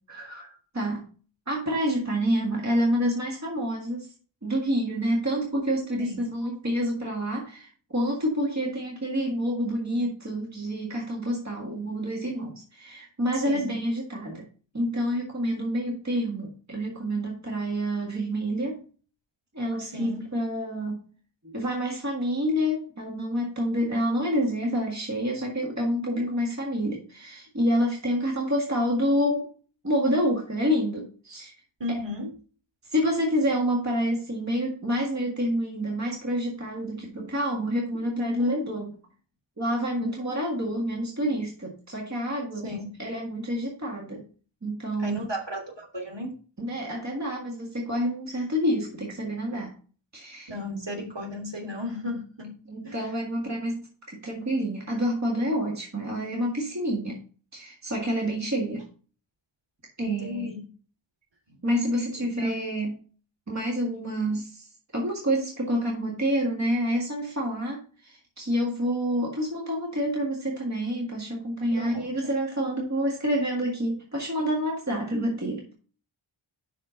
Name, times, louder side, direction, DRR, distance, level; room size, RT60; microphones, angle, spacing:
voice 1, 0.1-1.1 1.5-4.1 4.4-14.5 14.7-18.8 19.5-21.1 21.4-29.5 29.8-31.5 31.9-32.0 32.8-39.0 39.6-42.7 43.0-44.2 44.6-45.3 46.6-49.7 50.1-50.5 52.7-57.2 57.5-58.9 60.0-60.5 61.6-63.0 63.5-75.7, equal, 35° right, -1 dB, 1.8 m, -28 dB
voice 2, 13.3-13.7 19.8-20.2 31.8-32.3 42.6-42.9 45.0-46.3 50.5-52.5 52.8-53.1 60.0-60.6 61.5-61.6 62.4-62.5 71.7-72.0, left 2 dB, 60° right, 0 dB, 2.9 m, -34 dB
5.9 x 5.3 x 5.7 m, 0.39 s
wide cardioid pair, 80°, 49 cm